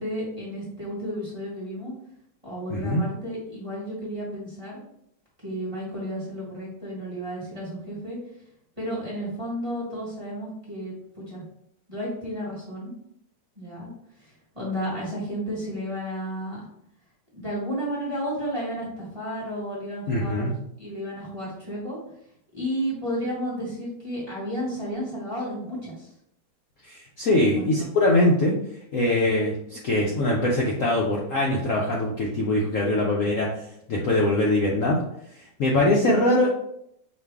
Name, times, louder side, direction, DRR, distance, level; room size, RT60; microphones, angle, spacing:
voice 1, 0.0-1.9 2.4-4.8 5.4-8.2 8.8-11.4 11.9-12.9 13.6-13.9 14.2-16.6 17.3-22.0 22.5-26.1 27.4-27.9 29.7-29.8, equal, 20° right, -6 dB, 1.3 m, -32 dB
voice 2, 2.7-3.0 20.1-20.5 26.8-28.6 28.9-33.5 33.9-35.0 35.6-36.5, left 1 dB, 60° left, -3 dB, 0.9 m, -22 dB
5.0 x 2.6 x 3.4 m, 0.75 s
omnidirectional pair, 1.9 m